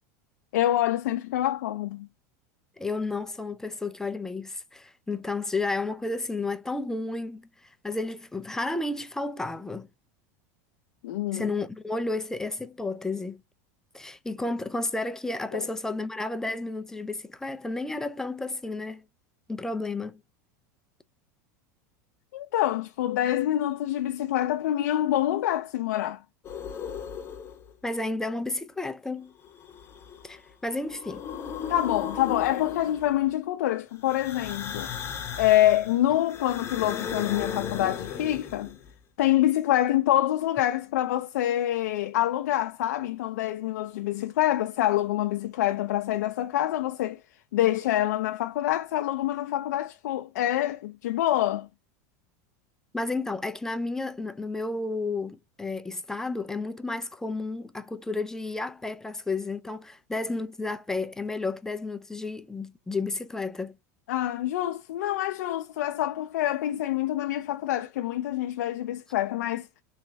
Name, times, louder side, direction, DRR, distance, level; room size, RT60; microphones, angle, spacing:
voice 1, 0.5-2.1 11.0-11.5 15.5-15.7 22.3-26.2 31.7-34.9 35.4-38.8 39.2-47.2 47.5-51.7 64.1-69.7, left 13 dB, 85° left, 0.4 m, -26 dB
voice 2, 2.8-9.9 11.3-13.4 13.9-19.0 19.5-20.2 27.8-29.3 30.2-31.2 52.9-63.8, left 3 dB, 5° left, 0.3 m, -32 dB
sound 1, 26.4-27.7 29.4-30.4 30.7-33.3 34.0-38.9, left 7 dB, 25° left, 0.8 m, -36 dB
3.4 x 3.2 x 3.1 m
supercardioid pair, 135°, 9 cm